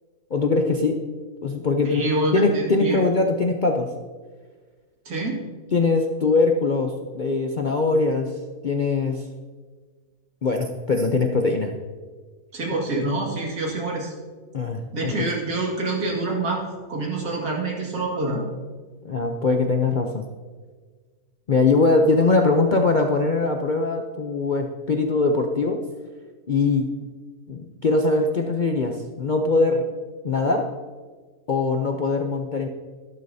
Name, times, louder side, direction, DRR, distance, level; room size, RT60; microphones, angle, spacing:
voice 1, 0.3-1.0 1.4-2.1 2.3-3.9 5.7-8.3 8.6-9.2 10.4-11.7 12.7-12.8 14.5-15.1 19.0-20.3 21.5-25.8 26.5-26.9 27.5-29.8 30.2-30.7 31.5-32.7, left 3 dB, 50° left, 3 dB, 0.6 m, -21 dB
voice 2, 1.8-3.0 5.1-5.4 12.5-14.1 14.9-16.6 16.9-18.4, right 2 dB, 80° right, -1 dB, 2.7 m, -26 dB
12.5 x 12.0 x 2.7 m, 1.5 s
omnidirectional pair, 1.6 m